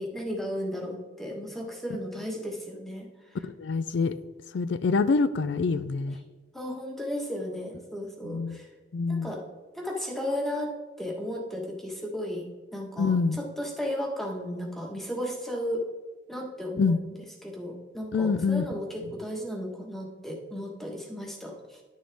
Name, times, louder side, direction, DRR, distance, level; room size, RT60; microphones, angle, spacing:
voice 1, 0.0-3.1 6.5-8.7 9.1-9.4 9.7-10.7 11.0-12.5 12.7-15.8 16.3-17.1 17.4-21.8, equal, ahead, 0 dB, 1.3 m, -34 dB
voice 2, 3.4-4.2 4.5-6.2 8.2-8.7 8.9-9.4 13.0-13.4 16.8-17.0 18.1-19.1, left 4 dB, 70° left, 12 dB, 0.4 m, -26 dB
11.0 x 6.3 x 3.4 m, 1.3 s
head